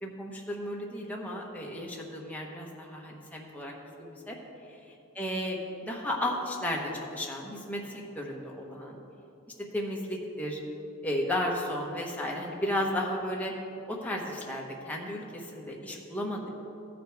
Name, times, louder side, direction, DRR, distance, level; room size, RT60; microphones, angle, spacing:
voice 1, 0.0-4.4 5.2-9.0 9.7-10.6 11.0-13.5 13.9-16.5, left 1 dB, 5° left, -2 dB, 1.0 m, -34 dB
14.0 x 5.2 x 4.6 m, 2.8 s
head